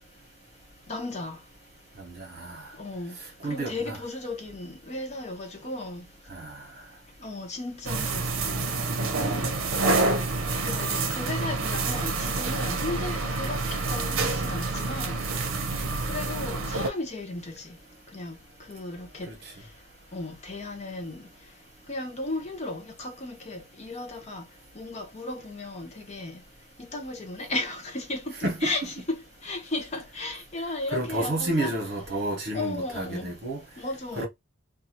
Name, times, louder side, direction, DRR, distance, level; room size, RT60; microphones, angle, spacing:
voice 1, 0.9-1.4 2.8-3.2 3.4-6.0 7.2-8.6 9.0-9.9 10.6-15.2 16.1-17.8 18.1-18.4 18.7-19.3 20.1-21.2 21.9-24.4 24.8-26.4 26.9-31.7 32.5-33.3 33.8-34.3, left 2 dB, 30° left, 0.6 m, -35 dB
voice 2, 2.0-2.7 3.4-4.0 6.3-6.7 19.3-19.4 28.4-28.7 30.9-33.6 34.1-34.3, right 1 dB, 50° right, 1.1 m, -30 dB
sound 1, 7.8-16.9, right 3 dB, 80° right, 0.6 m, -28 dB
2.8 x 2.3 x 2.8 m
head